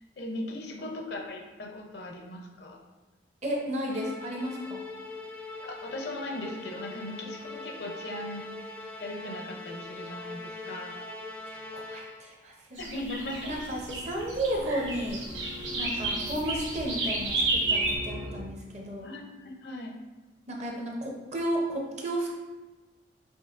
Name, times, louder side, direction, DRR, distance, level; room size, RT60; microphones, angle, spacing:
voice 1, 0.2-2.8 5.6-11.0 12.8-13.6 15.8-16.3 19.0-20.0, left 1 dB, 60° left, 2 dB, 0.5 m, -39 dB
voice 2, 3.4-4.8 11.5-12.8 13.5-15.2 15.8-19.1 20.5-22.4, right 1 dB, 35° right, -1 dB, 0.6 m, -33 dB
Musical instrument, 3.9-12.4, left 2 dB, 10° left, 0.3 m, -42 dB
sound 1, 12.8-18.0, right 2 dB, 85° right, 1.0 m, -31 dB
sound 2, 13.2-18.4, left 1 dB, 60° right, 1.1 m, -42 dB
5.3 x 3.0 x 2.4 m, 1.2 s
head